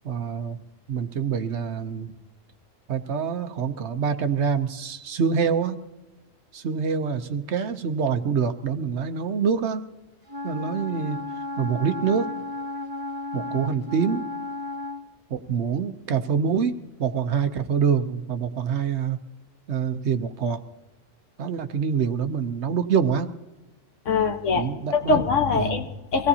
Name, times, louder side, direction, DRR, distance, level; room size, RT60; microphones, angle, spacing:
voice 1, 0.0-0.6 0.9-2.1 2.9-5.8 6.5-9.9 10.4-11.2 11.6-12.3 13.3-14.3 15.3-19.2 19.7-20.6 21.4-23.3 24.5-25.2 25.5-25.8, right 6 dB, 65° right, 8 dB, 1.0 m, -26 dB
Wind instrument woodwind instrument, 10.3-15.1, left 2 dB, 25° right, 0.6 m, -33 dB
voice 2, 24.0-24.7 24.9-26.3, left 4 dB, 70° left, 3 dB, 1.6 m, -22 dB
23.5 x 17.0 x 2.8 m, 1.0 s
omnidirectional pair, 1.3 m